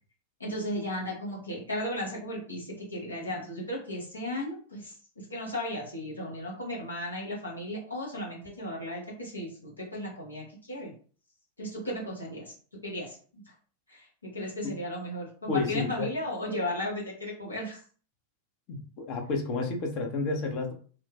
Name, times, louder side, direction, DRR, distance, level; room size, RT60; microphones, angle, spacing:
voice 1, 0.4-4.9 5.3-10.9 11.6-12.5 12.8-13.2 13.9-17.8, left 1 dB, 80° left, -3 dB, 1.0 m, -35 dB
voice 2, 15.5-16.1 18.7-20.7, left 3 dB, 40° left, 2 dB, 0.7 m, -30 dB
3.1 x 2.1 x 2.3 m, 0.42 s
figure-of-eight pair, 90°, 0 cm